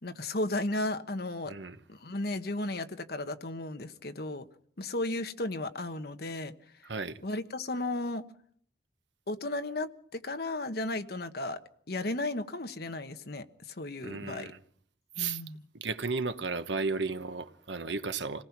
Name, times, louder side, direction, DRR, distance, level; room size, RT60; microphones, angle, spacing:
voice 1, 0.0-1.5 1.9-4.5 4.8-6.5 7.2-8.2 9.3-11.6 11.9-14.5 15.2-15.7, left 2 dB, 60° left, 1.3 m, -34 dB
voice 2, 1.5-1.8 6.8-7.2 14.0-14.6 15.2-15.4 15.8-18.4, right 4 dB, 80° right, 1.2 m, -34 dB
27.5 x 18.5 x 6.0 m
head